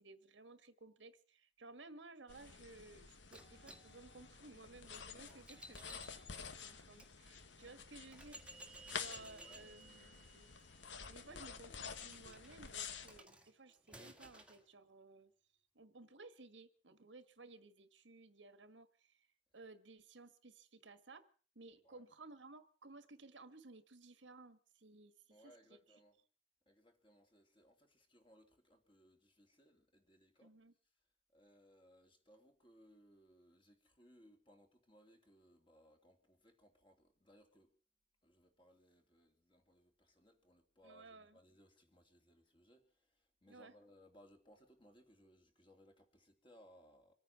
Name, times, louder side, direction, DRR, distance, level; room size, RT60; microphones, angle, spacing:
voice 1, 0.0-8.4 8.9-10.5 11.1-15.3 15.7-19.3 19.5-21.2 21.5-25.8 30.4-30.7 40.8-41.4 43.5-43.7, right 3 dB, 80° right, 1.6 m, -58 dB
sound 1, 2.3-13.2, left 6 dB, 70° left, 1.3 m, -50 dB
sound 2, 3.3-7.1 7.7-7.8 8.1-14.6, right 1 dB, 5° right, 1.6 m, -58 dB
voice 2, 5.5-6.3 9.0-9.7 11.2-11.8 21.8-22.0 25.3-26.2 26.6-30.5 31.3-37.7 38.2-47.1, equal, 30° left, 3.1 m, -66 dB
25.5 x 9.4 x 5.9 m
head